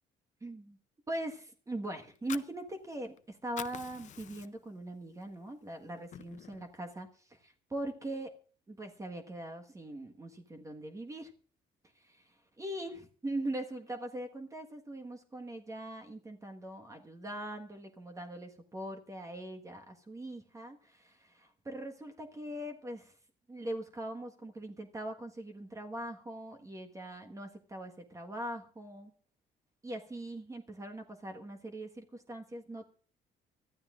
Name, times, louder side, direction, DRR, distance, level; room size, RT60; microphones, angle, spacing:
voice 1, 0.4-0.8 1.1-8.3 8.7-11.3 11.9-23.1 23.5-29.1 29.8-32.9, right 1 dB, 20° right, 3 dB, 1.5 m, -41 dB
Fire, 2.0-3.2 3.4-4.8 5.2-5.4 5.7-6.7, left 10 dB, 45° left, 0.6 m, -46 dB
24.5 x 13.0 x 2.5 m, 0.43 s
cardioid pair, 110°, 17 cm